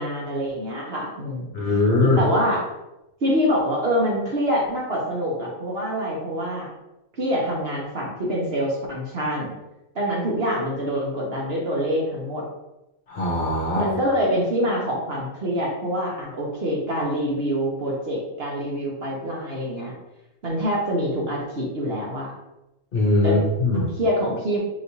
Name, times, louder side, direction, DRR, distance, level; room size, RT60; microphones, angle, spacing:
voice 1, 0.0-1.5 2.0-2.6 3.2-6.7 7.2-9.5 9.9-12.4 13.7-19.9 20.4-22.3 23.2-23.4 23.7-24.6, equal, 50° right, -3 dB, 1.0 m, -25 dB
voice 2, 1.5-2.2 13.1-13.9 22.9-23.9, left 2 dB, 45° left, -4 dB, 0.9 m, -21 dB
4.8 x 3.1 x 2.7 m, 0.93 s
omnidirectional pair, 1.5 m